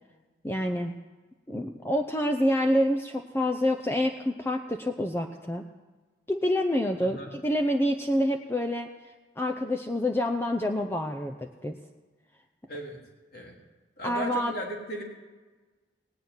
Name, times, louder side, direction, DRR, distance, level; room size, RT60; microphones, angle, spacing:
voice 1, 0.4-0.9 1.5-5.6 6.3-8.9 9.4-11.8 14.0-14.5, left 1 dB, 10° left, 4 dB, 0.6 m, -27 dB
voice 2, 12.7-13.0 13.3-13.5 14.0-15.0, right 1 dB, 55° left, -2 dB, 3.5 m, -36 dB
18.0 x 6.9 x 9.5 m, 1.3 s
head